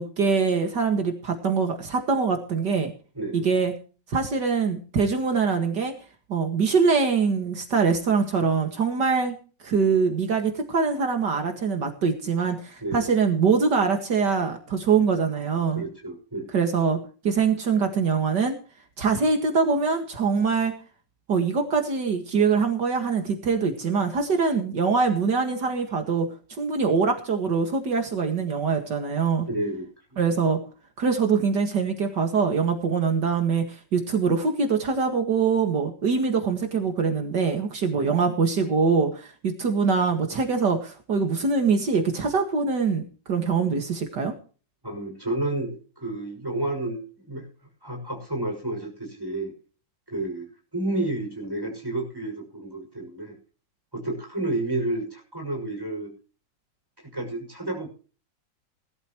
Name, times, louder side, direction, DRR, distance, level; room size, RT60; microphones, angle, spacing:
voice 1, 0.0-2.9 3.3-3.7 4.1-5.9 6.3-9.4 9.6-15.8 16.5-17.0 17.2-18.5 19.0-20.7 21.3-26.3 26.6-29.5 30.2-30.6 31.0-44.3, right 5 dB, 70° right, 4 dB, 2.5 m, -23 dB
voice 2, 3.1-3.5 12.8-13.1 15.7-16.5 29.5-29.9 38.0-38.1 44.8-47.5 47.8-49.5 50.1-50.5 50.7-53.4 53.9-56.1 57.0-57.9, right 2 dB, 10° right, 3 dB, 6.1 m, -30 dB
19.5 x 12.5 x 3.1 m, 0.38 s
omnidirectional pair, 1.9 m